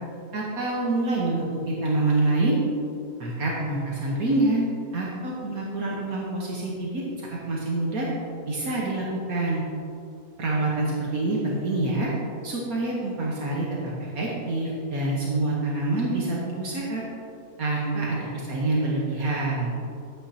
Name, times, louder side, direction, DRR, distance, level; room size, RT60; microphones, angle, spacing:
voice 1, 0.3-2.6 3.2-4.7 4.9-8.1 8.5-9.6 10.4-12.1 12.4-13.7 14.0-17.0 17.6-19.7, right 2 dB, 75° right, -4 dB, 1.6 m, -26 dB
10.5 x 9.3 x 2.8 m, 2.6 s
omnidirectional pair, 1.6 m